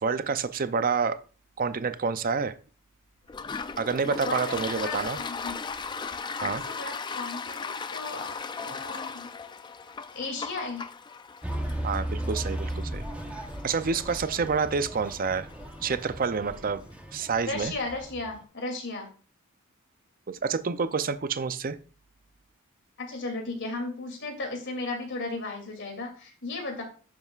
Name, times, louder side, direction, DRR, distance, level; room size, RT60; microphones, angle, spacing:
voice 1, 0.0-1.2 1.6-2.6 3.8-5.2 6.4-6.6 8.7-8.8 11.8-13.0 13.6-15.5 15.8-16.8 17.1-17.7 20.3-21.8, right 5 dB, 40° right, 12 dB, 0.5 m, -28 dB
Toilet flush, 3.3-16.7, left 5 dB, 20° left, 0.3 m, -38 dB
voice 2, 4.7-5.6 6.4-8.3 8.6-9.3 10.1-10.9 17.4-19.1 23.0-26.8, left 3 dB, 55° left, 2 dB, 2.7 m, -35 dB
sound 1, 11.4-18.4, right 1 dB, 5° right, 0.9 m, -36 dB
11.0 x 7.7 x 2.4 m, 0.38 s
head